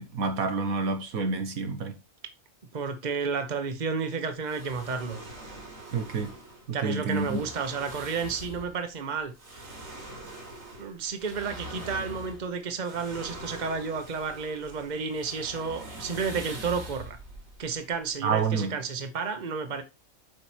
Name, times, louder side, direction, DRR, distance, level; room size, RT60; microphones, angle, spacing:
voice 1, 0.0-1.9 5.9-6.3 6.7-7.4 18.2-18.8, right 4 dB, 80° right, 1.7 m, -28 dB
voice 2, 2.7-5.2 6.7-9.3 10.8-17.2 17.6-19.8, right 5 dB, 35° right, 1.2 m, -31 dB
sound 1, 4.4-18.3, right 1 dB, 65° right, 2.9 m, -44 dB
7.9 x 5.0 x 4.4 m
omnidirectional pair, 1.5 m